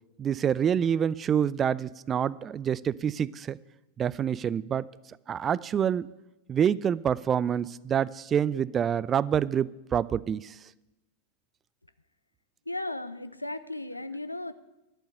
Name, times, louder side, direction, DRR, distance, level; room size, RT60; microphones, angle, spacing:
voice 1, 0.2-3.6 4.0-4.9 5.3-6.1 6.5-10.6, right 8 dB, 25° right, 21 dB, 0.3 m, -27 dB
voice 2, 12.7-14.5, left 2 dB, 85° left, 13 dB, 0.6 m, -35 dB
11.0 x 6.9 x 8.8 m, 0.98 s
figure-of-eight pair, 90°, 0 cm